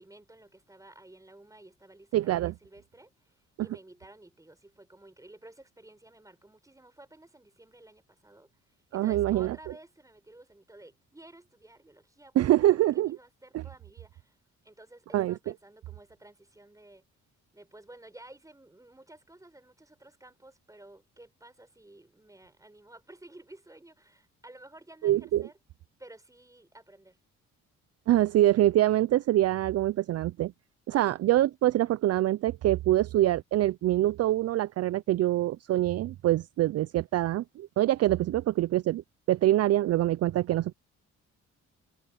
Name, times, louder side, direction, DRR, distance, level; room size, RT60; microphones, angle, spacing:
voice 1, 0.0-12.8 13.0-14.4 14.6-17.0 17.5-25.6 26.0-27.2, right 1 dB, 10° right, 5.9 m, -53 dB
voice 2, 2.1-2.5 8.9-9.6 12.4-13.2 13.5-13.6 15.1-15.3 25.0-25.5 28.1-30.5 30.9-39.0 39.3-40.7, right 14 dB, 55° right, 0.4 m, -25 dB
cardioid pair, 90°, 30 cm